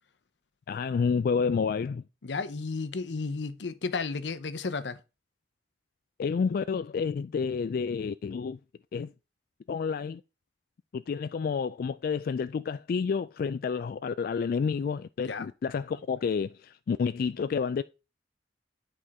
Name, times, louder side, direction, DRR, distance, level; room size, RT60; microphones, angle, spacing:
voice 1, 0.7-2.0 6.2-8.6 8.9-9.1 9.7-10.2 10.9-17.8, left 5 dB, 55° left, 0.3 m, -29 dB
voice 2, 2.2-5.0 15.2-15.5, left 4 dB, 80° left, 0.7 m, -33 dB
9.9 x 4.4 x 4.7 m
head